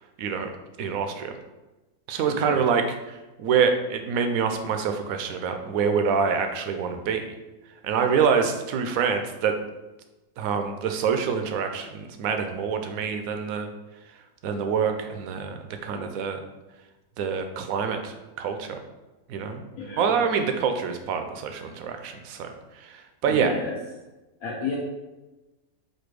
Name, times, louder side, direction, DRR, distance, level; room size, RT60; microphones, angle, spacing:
voice 1, 0.2-0.5 0.8-1.3 2.1-7.3 7.8-9.5 10.4-13.7 14.4-16.4 17.2-18.8 19.3-19.6 20.0-22.5 22.8-23.5, right 6 dB, 70° right, 6 dB, 0.9 m, -26 dB
voice 2, 2.3-2.7 19.8-20.1 23.3-23.7 24.4-24.8, left 4 dB, 70° left, -4 dB, 1.1 m, -32 dB
4.3 x 2.6 x 4.6 m, 1.1 s
omnidirectional pair, 1.7 m